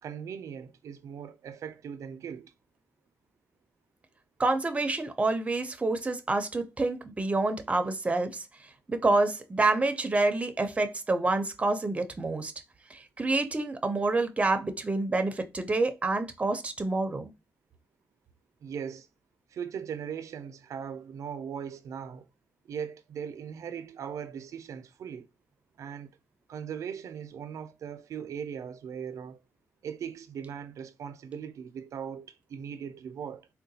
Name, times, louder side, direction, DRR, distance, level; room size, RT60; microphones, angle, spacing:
voice 1, 0.0-2.5 18.6-19.1 19.5-22.3 22.6-25.3 25.8-26.1 26.5-29.4 29.8-33.5, right 7 dB, 75° right, 0.4 m, -39 dB
voice 2, 4.4-8.4 8.9-12.5 12.9-17.3, right 2 dB, 25° right, 0.6 m, -27 dB
3.7 x 2.2 x 2.7 m
cardioid pair, 95°, 5 cm